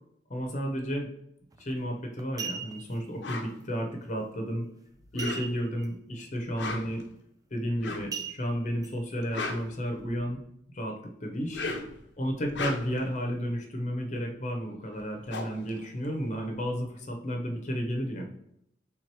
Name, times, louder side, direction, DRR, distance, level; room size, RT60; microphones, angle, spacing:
voice 1, 0.3-1.1 1.6-4.6 5.1-7.0 7.5-10.4 10.7-11.7 12.2-18.3, equal, 40° left, 2 dB, 0.7 m, -32 dB
sound 1, 1.5-1.7 2.2-3.0 5.2-5.9 6.2-6.3 6.8-7.0 8.1-8.9 9.5-9.6, right 6 dB, 20° right, 0.3 m, -38 dB
sound 2, 3.2-3.5 5.0-5.7 6.4-7.0 7.8-8.2 9.1-10.3 11.4-12.0 12.4-13.1 14.6-14.7 15.0-16.7, left 3 dB, 80° left, 0.7 m, -36 dB
3.5 x 3.0 x 4.6 m, 0.74 s
head